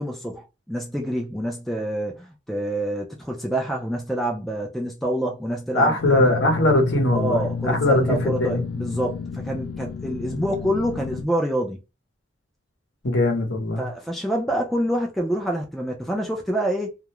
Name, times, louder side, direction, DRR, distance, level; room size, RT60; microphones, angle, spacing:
voice 1, 0.0-6.5 7.1-11.8 13.8-17.0, right 1 dB, ahead, 0.3 m, -27 dB
voice 2, 5.7-8.6 13.0-13.9, left 1 dB, 60° left, 0.8 m, -21 dB
sound 1, 6.0-11.2, left 5 dB, 85° left, 0.3 m, -31 dB
2.3 x 2.1 x 2.9 m
head